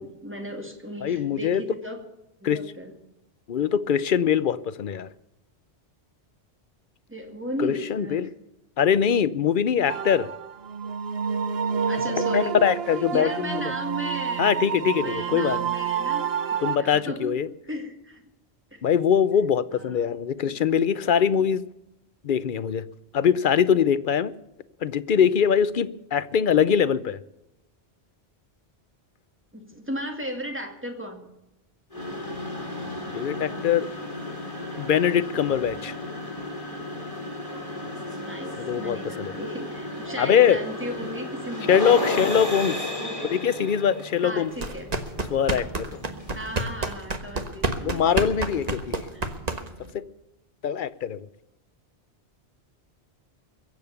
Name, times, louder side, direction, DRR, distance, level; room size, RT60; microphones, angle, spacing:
voice 1, 0.0-2.0 2.4-2.9 7.1-8.3 11.8-12.6 13.1-17.4 17.6-18.2 18.7-18.9 19.7-20.1 29.5-31.3 38.2-42.1 43.0-43.3 44.2-44.9 46.3-48.3 49.1-49.3, equal, 10° right, 3 dB, 2.3 m, -36 dB
voice 2, 1.0-1.6 2.4-2.6 3.5-5.1 7.6-8.3 8.8-10.3 12.1-13.6 14.4-15.6 16.6-17.5 18.8-21.6 22.2-22.8 23.1-24.3 24.8-27.2 33.1-33.9 34.8-35.9 38.7-39.3 40.2-40.6 41.7-42.8 43.3-44.5 45.3-45.9 47.8-49.0 49.9-50.0 50.6-51.3, left 8 dB, 55° left, 15 dB, 0.8 m, -22 dB
sound 1, 9.9-16.8, right 7 dB, 65° right, 1.0 m, -29 dB
sound 2, 31.9-46.8, left 2 dB, 30° left, 4.3 m, -34 dB
sound 3, 44.5-49.9, right 2 dB, 40° right, 1.3 m, -29 dB
22.5 x 8.0 x 6.9 m, 0.92 s
omnidirectional pair, 1.1 m